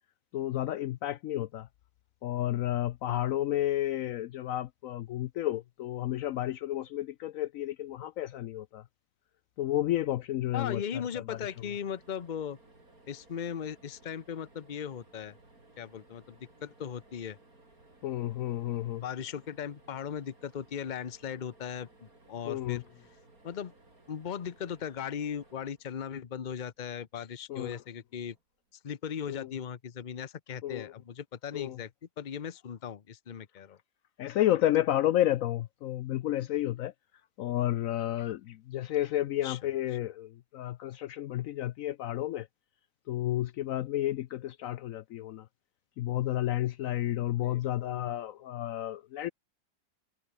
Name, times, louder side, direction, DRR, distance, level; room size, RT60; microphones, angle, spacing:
voice 1, 0.3-1.7 2.2-8.8 9.6-11.5 18.0-19.0 22.5-22.8 27.5-27.8 29.3-29.5 30.6-30.9 31.5-31.8 34.2-36.9 37.4-42.5 43.1-45.5 46.0-49.3, left 13 dB, 90° left, 0.7 m, -31 dB
voice 2, 10.5-12.6 13.1-15.3 15.8-17.4 19.0-22.8 23.4-23.7 24.1-28.4 28.8-31.9 32.2-33.8 39.4-39.6 47.4-47.6, left 8 dB, 45° left, 0.6 m, -38 dB
sound 1, 11.3-26.6 28.2-28.4 28.7-28.8, right 2 dB, 50° right, 6.6 m, -60 dB
omnidirectional pair, 2.0 m